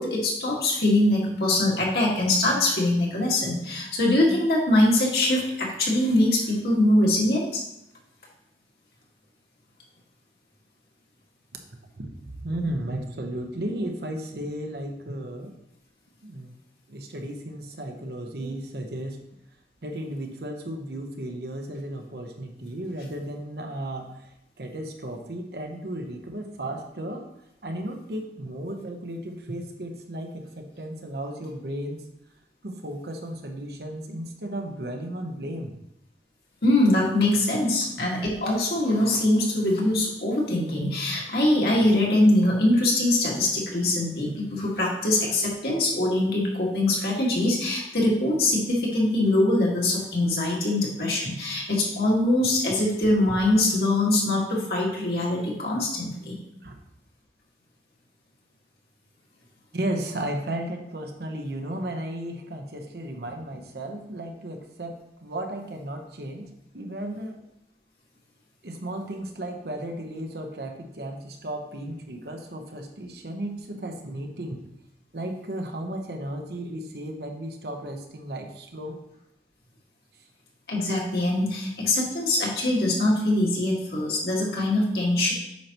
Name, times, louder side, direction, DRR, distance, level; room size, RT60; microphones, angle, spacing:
voice 1, 0.0-7.6 36.6-56.4 80.7-85.3, left 1 dB, 60° left, -3 dB, 1.9 m, -23 dB
voice 2, 12.0-15.6 16.2-16.5 16.9-19.2 19.8-24.3 24.6-27.3 27.6-32.1 32.6-35.8 37.6-37.8 56.6-56.8 59.7-67.4 68.6-74.6 75.1-79.0, right 1 dB, 65° right, 3 dB, 1.0 m, -34 dB
8.5 x 5.8 x 3.0 m, 0.86 s
head